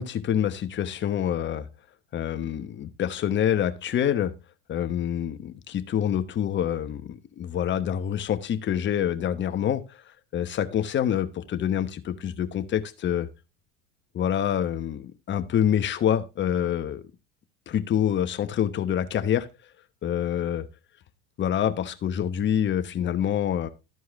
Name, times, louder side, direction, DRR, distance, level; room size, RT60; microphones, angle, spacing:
voice 1, 0.0-1.7 2.1-4.3 4.7-9.8 10.3-13.3 14.1-17.0 17.7-19.5 20.0-20.7 21.4-23.7, left 9 dB, 35° left, 1.0 m, -26 dB
13.0 x 4.7 x 3.5 m
hypercardioid pair, 90°, 30 cm